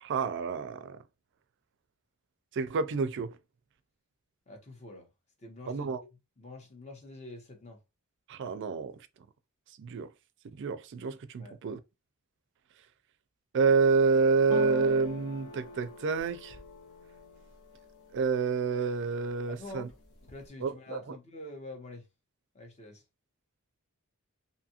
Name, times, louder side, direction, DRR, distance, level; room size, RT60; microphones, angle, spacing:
voice 1, 0.0-1.0 2.5-3.4 5.7-6.0 8.3-9.0 9.8-10.1 10.6-11.8 13.5-16.6 18.1-19.9 20.6-21.2, right 4 dB, 55° right, 0.4 m, -28 dB
voice 2, 4.5-5.1 5.4-5.9 6.4-7.8 11.4-11.6 19.5-19.9 20.3-22.1 22.5-23.0, left 2 dB, 30° left, 0.9 m, -46 dB
sound 1, 14.5-18.4 18.8-19.4 19.7-20.5, left 4 dB, 60° left, 0.9 m, -42 dB
2.7 x 2.4 x 2.8 m
head